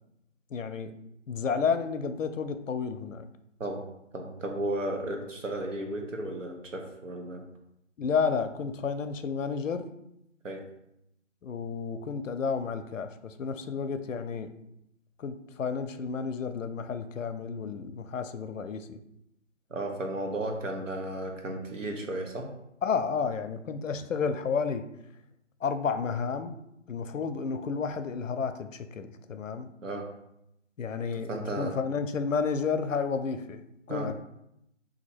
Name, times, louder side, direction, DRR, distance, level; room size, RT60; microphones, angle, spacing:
voice 1, 0.5-0.9 1.3-3.3 8.0-9.8 11.4-14.5 15.2-19.0 22.8-24.9 25.6-26.6 26.9-29.7 30.8-33.6 33.9-34.1, left 5 dB, 85° left, 9 dB, 0.5 m, -31 dB
voice 2, 4.1-7.4 10.4-10.6 19.7-22.5 29.8-30.0 31.1-31.8 33.9-34.1, right 1 dB, 80° right, 3 dB, 1.0 m, -34 dB
2.9 x 2.6 x 4.3 m, 0.81 s
figure-of-eight pair, 170°, 38 cm